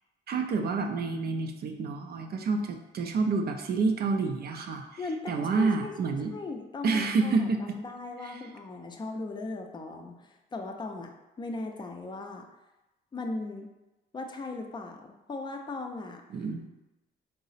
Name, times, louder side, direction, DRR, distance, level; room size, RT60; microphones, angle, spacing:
voice 1, 0.3-4.8 5.3-6.3 6.8-7.8 8.2-8.4 16.3-16.7, right 4 dB, 50° right, 4 dB, 0.4 m, -28 dB
voice 2, 5.0-12.5 13.1-13.7 14.1-16.2, left 3 dB, 20° left, 3 dB, 0.4 m, -38 dB
3.8 x 2.0 x 4.0 m, 1.0 s
cardioid pair, 90°, 20 cm